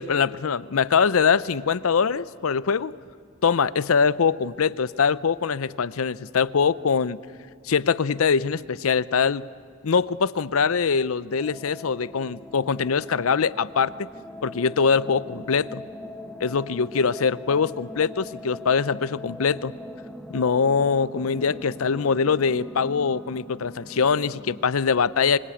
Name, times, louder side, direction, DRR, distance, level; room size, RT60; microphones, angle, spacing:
voice 1, 0.0-2.9 3.4-7.2 7.6-9.5 9.8-13.9 14.4-15.8 16.4-19.7 20.3-25.4, left 5 dB, 85° left, 18 dB, 0.6 m, -23 dB
sound 1, 11.4-24.7, left 1 dB, 5° left, 0.9 m, -41 dB
25.0 x 24.5 x 8.5 m, 2.2 s
head